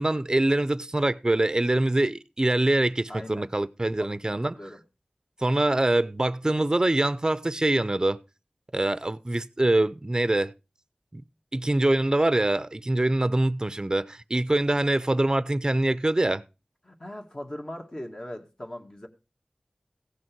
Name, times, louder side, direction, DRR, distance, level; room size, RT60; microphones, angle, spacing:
voice 1, 0.0-4.6 5.4-8.2 8.7-10.5 11.1-11.2 11.5-16.4, right 1 dB, 30° right, 0.6 m, -24 dB
voice 2, 3.1-3.5 4.0-4.8 16.8-19.1, left 1 dB, 35° left, 1.9 m, -40 dB
16.0 x 6.2 x 4.5 m
wide cardioid pair, 60°, 2 cm